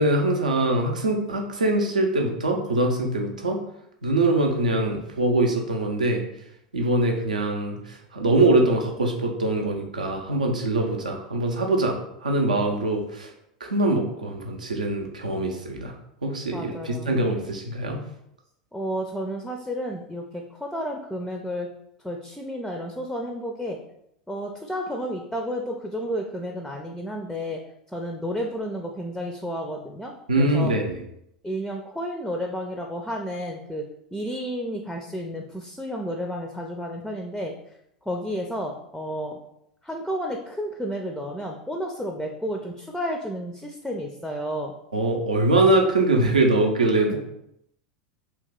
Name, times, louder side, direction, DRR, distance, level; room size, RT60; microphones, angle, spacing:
voice 1, 0.0-3.6 4.0-6.2 6.7-13.3 13.6-15.9 16.2-18.0 30.3-31.0 44.9-47.2, right 2 dB, 80° right, 2 dB, 0.6 m, -23 dB
voice 2, 16.5-17.2 18.7-21.7 22.0-23.8 24.3-27.6 27.9-30.7 31.4-33.9 34.1-37.5 38.1-39.4 39.8-44.7, equal, 5° left, 2 dB, 0.4 m, -31 dB
2.8 x 2.7 x 3.7 m, 0.77 s
figure-of-eight pair, 85°, 4 cm